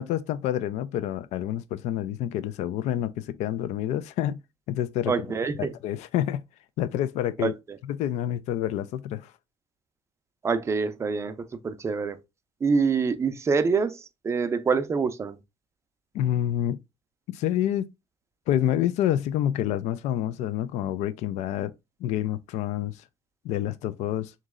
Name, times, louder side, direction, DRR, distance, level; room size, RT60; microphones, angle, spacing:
voice 1, 0.0-4.4 4.7-5.1 5.6-6.4 6.8-7.5 7.8-9.3 16.1-16.8 17.3-17.9 18.5-21.7 22.0-23.0 23.4-24.3, left 11 dB, 75° left, 0.4 m, -28 dB
voice 2, 5.1-5.7 7.4-7.5 10.4-12.2 12.6-15.4, right 5 dB, 25° right, 0.5 m, -26 dB
3.8 x 3.1 x 3.6 m
cardioid pair, 135°, 12 cm